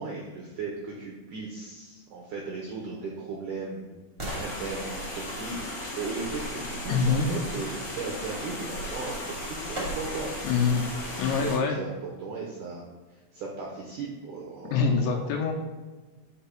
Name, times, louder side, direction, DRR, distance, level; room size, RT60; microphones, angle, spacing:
voice 1, 0.0-3.9 4.4-10.6 11.1-12.8 13.1-15.2, right 4 dB, 90° right, -2 dB, 1.8 m, -37 dB
sound 1, 4.3-11.6, left 1 dB, 50° left, 2.5 m, -36 dB
voice 2, 6.9-7.3 10.4-10.9 11.2-11.8 14.7-15.5, left 5 dB, 80° left, 2 dB, 3.0 m, -24 dB
sound 2, 9.7-10.4 10.9-11.0, right 1 dB, 30° right, 1.0 m, -42 dB
6.6 x 4.6 x 5.7 m, 1.3 s
omnidirectional pair, 5.4 m